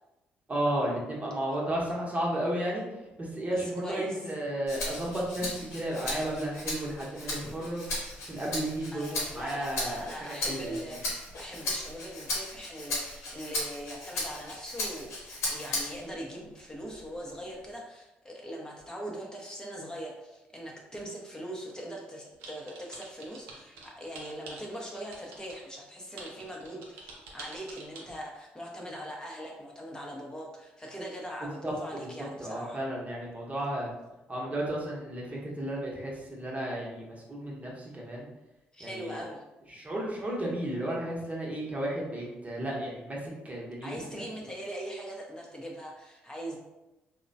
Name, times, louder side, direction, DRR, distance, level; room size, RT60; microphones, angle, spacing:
voice 1, 0.5-2.8 3.2-7.8 8.2-9.1 9.3-10.8 31.6-31.7 32.0-32.1 32.4-33.9 34.3-38.3 38.8-39.2 39.7-44.2, right 1 dB, 30° right, -3 dB, 0.9 m, -33 dB
voice 2, 3.5-4.2 8.9-15.1 15.5-32.8 38.7-39.4 43.8-46.6, equal, 15° left, -2 dB, 0.7 m, -41 dB
Rattle (instrument), 4.7-16.1 16.6-17.8, left 2 dB, 75° left, 0.9 m, -36 dB
sound 1, 22.4-25.6 26.2-28.0, right 3 dB, 75° right, 0.5 m, -46 dB
2.9 x 2.2 x 2.6 m, 0.98 s
hypercardioid pair, 50°, 5 cm